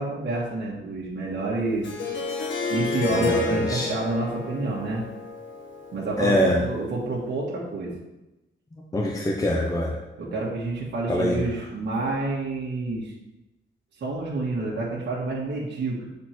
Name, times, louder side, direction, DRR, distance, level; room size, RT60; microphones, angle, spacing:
voice 1, 0.0-1.9 2.7-5.0 5.9-7.9 10.2-13.1 14.0-16.1, right 2 dB, 55° right, -5 dB, 1.6 m, -28 dB
Harp, 1.8-6.8, left 3 dB, 65° left, 1.1 m, -31 dB
voice 2, 3.1-3.9 6.2-6.6 8.7-10.0 11.1-11.4, left 1 dB, 15° left, -1 dB, 0.7 m, -24 dB
7.5 x 4.3 x 4.4 m, 0.97 s
wide cardioid pair, 160°, 21 cm